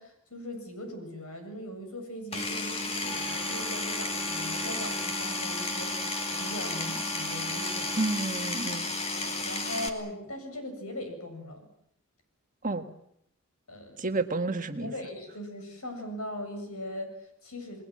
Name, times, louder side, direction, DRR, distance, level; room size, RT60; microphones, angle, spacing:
voice 1, 0.0-7.9 9.1-11.7 12.6-12.8 13.7-14.1 14.8-17.8, left 1 dB, 85° left, 6 dB, 7.7 m, -40 dB
Power tool, 2.3-9.9, left 2 dB, 25° left, 2.4 m, -32 dB
Wind instrument woodwind instrument, 3.0-8.3, right 2 dB, ahead, 1.7 m, -44 dB
voice 2, 8.0-8.9 12.6-12.9 14.0-14.9, right 3 dB, 35° right, 7 dB, 1.6 m, -30 dB
29.5 x 20.5 x 7.7 m, 0.72 s
head